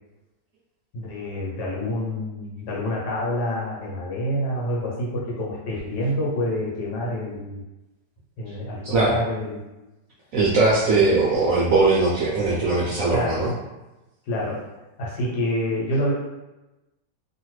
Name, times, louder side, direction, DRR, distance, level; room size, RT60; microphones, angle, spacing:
voice 1, 0.9-7.6 8.4-9.6 13.1-13.5 14.3-14.6 15.0-16.1, left 1 dB, 70° left, -4 dB, 1.3 m, -27 dB
voice 2, 10.3-13.5, right 3 dB, 70° right, -6 dB, 0.8 m, -20 dB
2.8 x 2.4 x 3.0 m, 1.0 s
omnidirectional pair, 1.9 m